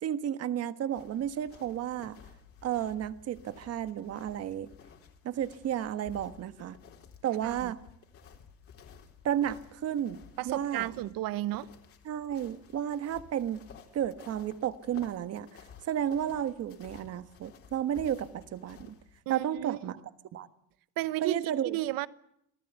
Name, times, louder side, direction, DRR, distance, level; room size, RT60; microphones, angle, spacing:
voice 1, 0.0-2.2 2.6-4.7 5.2-6.8 7.2-7.8 9.2-10.9 12.0-13.6 13.9-15.5 15.8-19.0 19.3-20.0 20.3-20.5 21.2-21.8, right 10 dB, 45° right, 1.5 m, -32 dB
sound 1, 0.9-19.2, left 7 dB, 40° left, 3.7 m, -54 dB
voice 2, 7.4-7.7 10.4-11.7 19.3-19.9 21.0-22.1, right 16 dB, 80° right, 1.2 m, -33 dB
27.5 x 18.5 x 8.2 m
cardioid pair, 180°, 34 cm